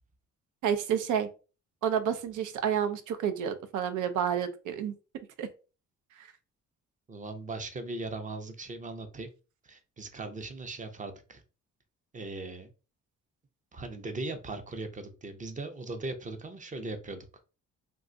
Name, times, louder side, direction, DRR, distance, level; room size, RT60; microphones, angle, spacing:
voice 1, 0.6-1.3 1.8-4.9 5.4-5.5 6.2-6.3, right 8 dB, 80° right, 9 dB, 0.6 m, -29 dB
voice 2, 7.1-9.3 9.6-11.4 12.1-12.7 13.7-17.3, right 2 dB, 25° right, 7 dB, 0.6 m, -39 dB
2.5 x 2.3 x 3.8 m, 0.34 s
cardioid pair, 90°, 30 cm